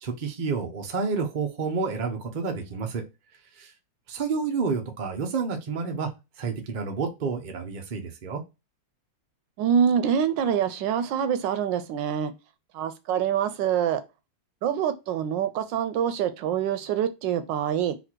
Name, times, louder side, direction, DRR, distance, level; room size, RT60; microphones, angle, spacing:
voice 1, 0.0-3.0 3.6-3.7 4.1-6.1 6.4-8.4, right 5 dB, 40° right, 0.7 m, -29 dB
voice 2, 9.6-12.3 12.7-14.0 14.6-18.0, right 8 dB, 85° right, 1.3 m, -25 dB
4.2 x 2.6 x 4.5 m
omnidirectional pair, 1.9 m